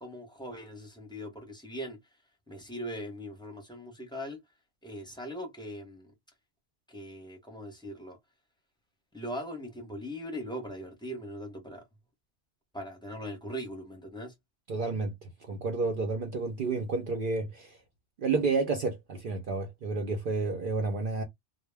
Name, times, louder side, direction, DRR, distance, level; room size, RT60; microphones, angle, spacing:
voice 1, 0.0-2.0 2.5-4.4 4.8-6.1 6.9-8.2 9.1-11.8 12.7-14.3, equal, 5° left, 0.6 m, -40 dB
voice 2, 14.7-17.8 18.2-21.2, right 3 dB, 55° right, 0.7 m, -30 dB
2.1 x 2.1 x 3.2 m
omnidirectional pair, 1.2 m